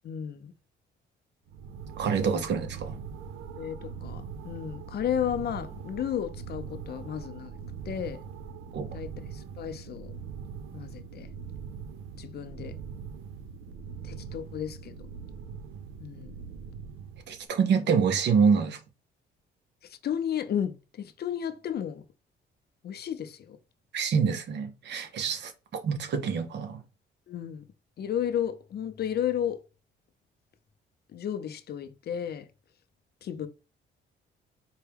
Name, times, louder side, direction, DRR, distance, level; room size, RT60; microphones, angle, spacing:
voice 1, 0.0-0.5 2.2-2.4 3.6-7.5 7.9-8.2 8.9-10.1 10.7-11.3 12.1-12.8 14.0-14.9 16.0-16.3 19.9-22.0 22.8-23.6 27.3-27.6 28.0-29.6 31.1-32.5 33.2-33.5, left 9 dB, 55° left, 0.5 m, -33 dB
sound 1, 1.5-17.5, right 6 dB, 90° right, 0.5 m, -42 dB
voice 2, 2.0-3.0 8.7-8.9 17.3-18.8 23.9-26.8, right 6 dB, 60° right, 0.8 m, -26 dB
4.4 x 2.2 x 3.4 m
cardioid pair, 90°, 20 cm